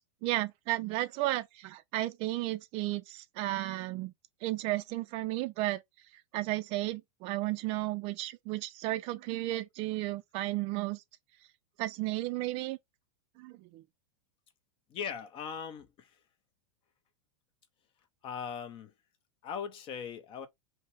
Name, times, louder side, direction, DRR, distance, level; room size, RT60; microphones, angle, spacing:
voice 1, 0.2-4.1 4.4-5.8 6.3-11.0 11.8-12.8 13.4-13.8, right 17 dB, 40° right, 0.5 m, -33 dB
voice 2, 14.9-16.1 18.2-18.9 19.4-20.5, left 7 dB, 35° left, 0.8 m, -39 dB
5.4 x 2.2 x 3.4 m
supercardioid pair, 135°, 16 cm